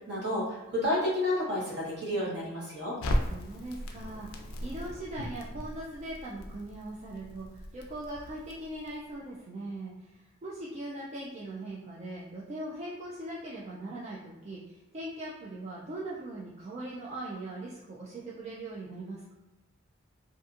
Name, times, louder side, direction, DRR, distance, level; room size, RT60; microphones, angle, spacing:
voice 1, 0.1-3.0, left 1 dB, 55° right, -6 dB, 1.0 m, -30 dB
Crackle, 3.0-9.1, equal, 80° left, 0.4 m, -37 dB
voice 2, 3.3-19.3, right 1 dB, 30° right, -5 dB, 0.3 m, -40 dB
2.6 x 2.5 x 2.4 m, 1.1 s
head